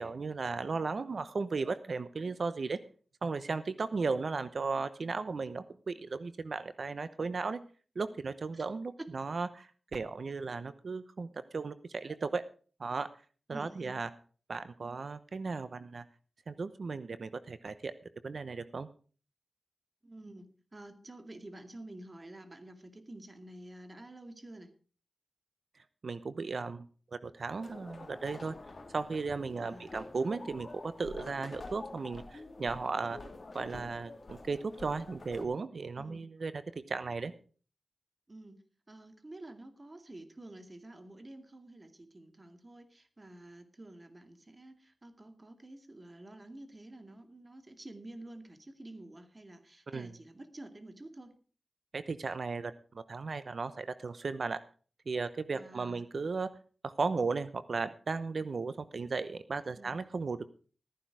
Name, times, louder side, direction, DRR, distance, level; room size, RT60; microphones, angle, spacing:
voice 1, 0.0-2.8 3.2-7.6 8.0-12.4 12.8-13.1 13.5-14.1 14.5-16.0 16.5-17.9 18.2-18.9 26.0-26.8 27.1-28.5 28.9-33.2 33.5-36.6 36.9-37.3 49.9-50.1 51.9-54.6 55.1-56.5 56.8-60.5, right 4 dB, 65° right, 13 dB, 0.8 m, -36 dB
voice 2, 13.5-13.9 20.0-20.5 20.7-24.7 29.5-30.0 36.0-36.3 38.3-38.6 38.9-51.3 55.5-56.0 59.8-60.0, right 1 dB, 35° right, 7 dB, 2.3 m, -49 dB
sound 1, 27.6-35.5, left 2 dB, 50° left, 2.5 m, -47 dB
14.0 x 10.0 x 4.7 m, 0.40 s
cardioid pair, 55°, 0 cm